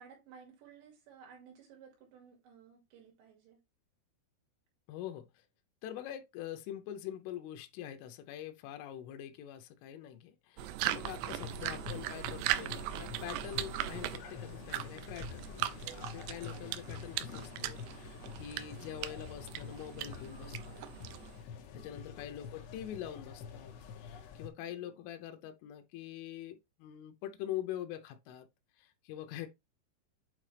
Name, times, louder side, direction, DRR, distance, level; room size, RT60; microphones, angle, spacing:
voice 1, 0.0-3.6 16.6-17.0 21.7-22.0 24.6-25.0, right 7 dB, 70° right, 4.4 m, -57 dB
voice 2, 4.9-5.5 5.8-20.8 21.7-23.7 24.0-28.5 28.8-29.5, left 11 dB, 90° left, 3.3 m, -44 dB
sound 1, 10.6-21.4, right 13 dB, 85° right, 2.4 m, -39 dB
sound 2, 11.2-24.5, left 6 dB, 70° left, 3.1 m, -47 dB
8.7 x 3.9 x 3.3 m
omnidirectional pair, 5.5 m